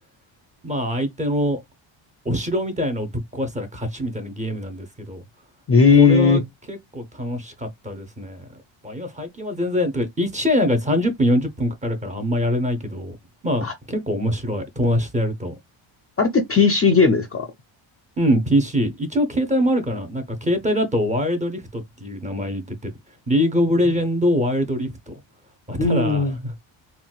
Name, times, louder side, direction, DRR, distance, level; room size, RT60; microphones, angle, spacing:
voice 1, 0.6-1.6 2.2-5.2 6.0-6.4 6.7-8.5 8.8-13.2 13.4-15.5 18.2-22.9 23.3-25.1 25.7-26.6, equal, 15° right, 0.6 m, -23 dB
voice 2, 5.7-6.4 13.6-13.7 16.2-17.5 25.8-26.4, left 4 dB, 30° left, 0.4 m, -16 dB
3.8 x 2.2 x 2.3 m
cardioid pair, 130°, 48 cm